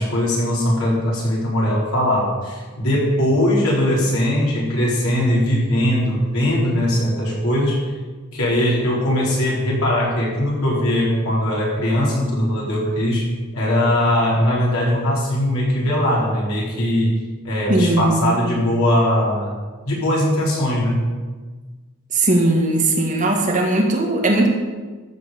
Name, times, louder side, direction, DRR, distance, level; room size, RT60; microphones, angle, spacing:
voice 1, 0.0-7.9 8.3-17.1 17.4-19.5 19.8-21.1, left 1 dB, 80° left, -4 dB, 4.5 m, -20 dB
voice 2, 17.7-18.4 22.1-24.5, right 2 dB, 35° right, 0 dB, 1.9 m, -18 dB
13.5 x 6.9 x 6.9 m, 1.3 s
head